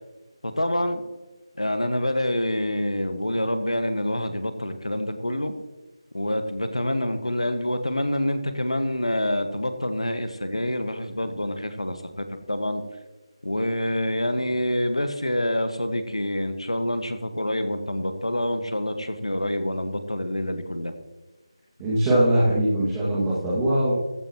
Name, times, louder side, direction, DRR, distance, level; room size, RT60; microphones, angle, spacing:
voice 1, 0.4-1.0 1.6-5.5 6.1-12.8 13.4-20.9, left 1 dB, 85° left, 8 dB, 1.6 m, -27 dB
voice 2, 21.8-23.9, right 1 dB, 10° right, -10 dB, 2.1 m, -21 dB
15.0 x 10.5 x 3.0 m, 1.2 s
figure-of-eight pair, 160°, 3 cm